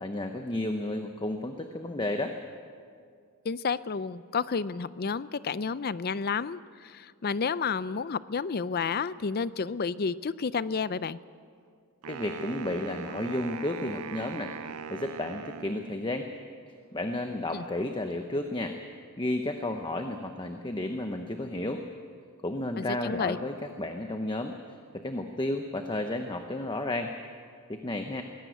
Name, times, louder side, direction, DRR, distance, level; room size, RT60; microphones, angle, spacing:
voice 1, 0.0-2.3 12.1-16.3 16.9-18.8 19.2-21.8 22.4-24.5 24.9-27.1 27.7-28.2, left 1 dB, 20° left, 6 dB, 0.9 m, -32 dB
voice 2, 3.4-11.2 17.5-17.6 22.8-23.4, left 5 dB, 45° left, 17 dB, 0.5 m, -31 dB
Wind instrument woodwind instrument, 12.0-16.3, right 6 dB, 90° right, 0.6 m, -41 dB
22.0 x 17.0 x 8.0 m, 2.2 s
head